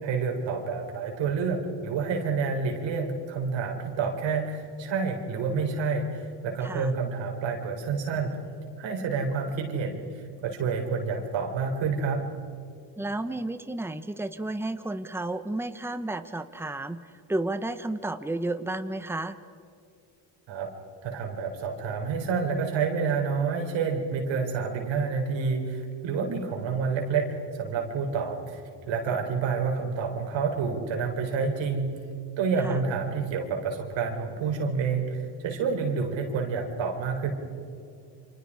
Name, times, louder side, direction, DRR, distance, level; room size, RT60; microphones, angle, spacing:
voice 1, 0.0-8.4 8.8-12.2 20.5-20.7 21.0-28.6 28.9-32.0 32.4-37.3, right 5 dB, 85° right, 2 dB, 4.2 m, -28 dB
voice 2, 13.0-17.0 17.3-19.4 32.6-32.8, right 2 dB, 5° right, 10 dB, 1.1 m, -32 dB
29.0 x 25.5 x 5.0 m, 2.5 s
cardioid pair, 85°, 44 cm